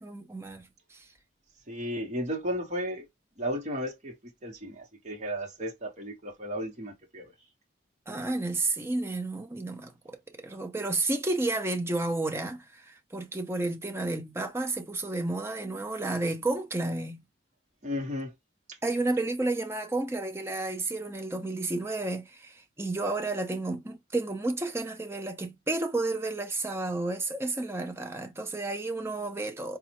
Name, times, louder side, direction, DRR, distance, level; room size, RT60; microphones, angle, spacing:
voice 1, 0.0-1.0 8.1-17.2 18.8-29.8, right 2 dB, 15° right, 0.6 m, -31 dB
voice 2, 1.7-3.0 3.4-4.1 4.4-7.2 17.8-18.3, equal, 40° right, 1.1 m, -34 dB
4.0 x 2.4 x 2.9 m
head